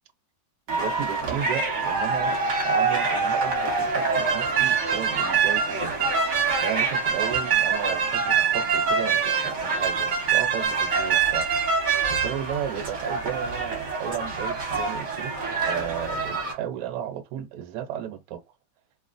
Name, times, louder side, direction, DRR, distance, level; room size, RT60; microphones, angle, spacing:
sound 1, 0.7-16.5, right 5 dB, 45° right, 1.0 m, -25 dB
voice 1, 0.7-2.4 2.6-6.0 6.6-11.5 12.1-15.3 15.7-18.4, right 10 dB, 70° right, 1.0 m, -34 dB
3.1 x 2.4 x 2.4 m
omnidirectional pair, 2.1 m